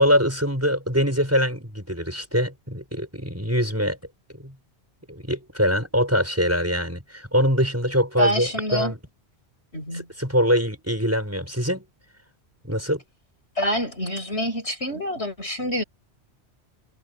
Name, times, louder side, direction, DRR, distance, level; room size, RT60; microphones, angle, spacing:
voice 1, 0.0-4.0 4.4-4.5 5.1-9.0 9.9-11.8 12.6-13.0, equal, 15° right, 6.6 m, -23 dB
voice 2, 8.2-8.9 9.7-10.1 13.6-15.8, equal, 80° left, 6.9 m, -26 dB
omnidirectional pair, 1.1 m